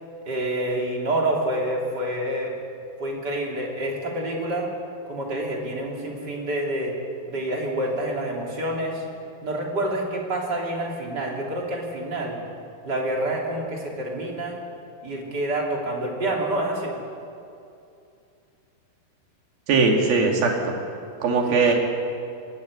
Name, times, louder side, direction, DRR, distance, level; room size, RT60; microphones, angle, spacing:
voice 1, 0.2-2.5 3.0-4.7 5.1-7.0 7.3-9.0 9.4-12.4 12.8-14.6 15.0-16.9 21.4-21.7, right 1 dB, 30° right, -1 dB, 3.2 m, -27 dB
voice 2, 19.7-20.8 21.2-21.7, right 4 dB, 65° right, 1 dB, 4.2 m, -20 dB
23.5 x 13.0 x 9.5 m, 2.6 s
omnidirectional pair, 4.6 m